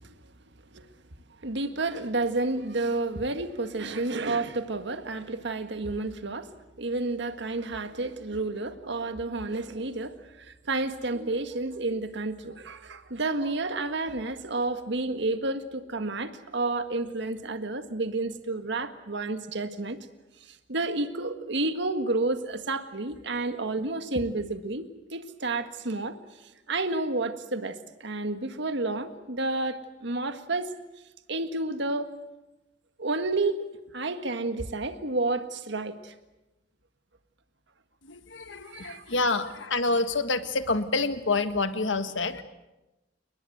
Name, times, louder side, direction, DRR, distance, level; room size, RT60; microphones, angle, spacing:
voice 1, 1.4-6.5 6.8-20.0 20.5-26.2 26.7-30.7 31.3-32.1 33.0-33.6 33.9-36.1 38.5-39.0, right 2 dB, 65° right, 1.8 m, -30 dB
voice 2, 38.0-42.4, left 3 dB, 75° left, 1.7 m, -27 dB
30.0 x 20.0 x 8.0 m
head